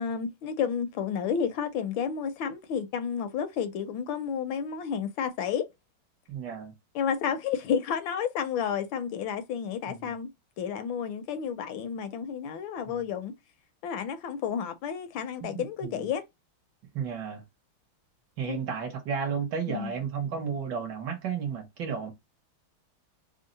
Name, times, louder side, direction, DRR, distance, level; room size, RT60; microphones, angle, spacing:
voice 1, 0.0-5.6 6.9-10.3 10.6-13.3 13.8-16.2 18.4-18.6 19.7-19.9, left 7 dB, 75° left, 1.3 m, -31 dB
voice 2, 6.3-6.7 9.9-10.1 12.9-13.1 15.4-16.1 16.9-17.4 18.4-22.1, right 6 dB, 65° right, 1.4 m, -33 dB
3.6 x 2.0 x 3.8 m
omnidirectional pair, 2.2 m